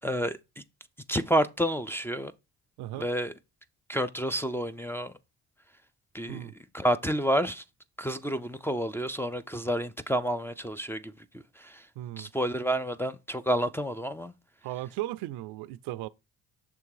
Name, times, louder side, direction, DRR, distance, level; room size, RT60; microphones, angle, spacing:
voice 1, 0.0-0.6 1.1-2.3 3.0-3.3 3.9-5.1 6.1-7.6 8.0-11.8 12.2-14.3, equal, 5° left, 0.4 m, -30 dB
voice 2, 12.0-12.3 14.6-16.1, right 15 dB, 75° right, 0.5 m, -36 dB
6.6 x 3.4 x 4.7 m
supercardioid pair, 70°, 39 cm